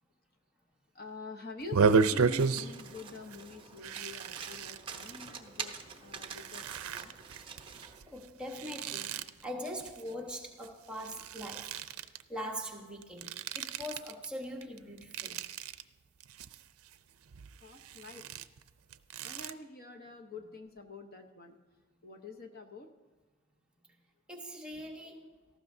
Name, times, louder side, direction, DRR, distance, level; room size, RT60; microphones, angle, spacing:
voice 1, 0.9-5.7 6.0-7.1 17.6-18.2 19.2-21.5 22.0-22.9, left 3 dB, 45° left, 0.9 m, -47 dB
sound 1, 1.6-2.9 3.2-3.4 3.8-5.3 5.9-10.7 10.9-12.2 13.0-14.3 14.6-15.8 16.2-16.9 17.3-19.5, right 5 dB, 70° right, 0.5 m, -33 dB
Domestic sounds home sounds, 2.4-8.0, right 5 dB, 25° right, 0.8 m, -46 dB
voice 2, 8.1-11.9 12.3-15.4 24.3-25.4, equal, 5° right, 1.2 m, -42 dB
18.0 x 14.5 x 2.7 m
head